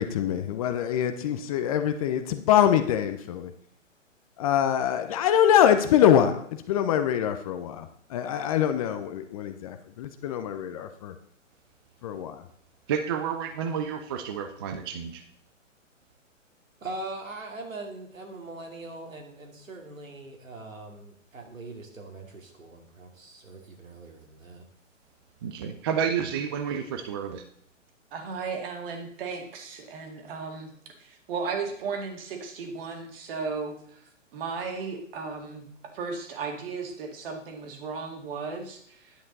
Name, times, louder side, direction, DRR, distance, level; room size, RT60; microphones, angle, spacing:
voice 1, 0.0-3.5 4.4-11.1 12.0-12.4, left 10 dB, 30° left, 8 dB, 0.6 m, -24 dB
voice 2, 12.9-15.2 25.4-27.4, right 7 dB, 20° right, 7 dB, 0.4 m, -30 dB
voice 3, 16.8-24.6, right 2 dB, 85° right, 2 dB, 2.5 m, -41 dB
voice 4, 28.1-34.0 34.3-35.7 35.9-39.1, right 5 dB, 45° right, 4 dB, 2.1 m, -35 dB
10.0 x 7.4 x 4.0 m, 0.65 s
hypercardioid pair, 130°, 39 cm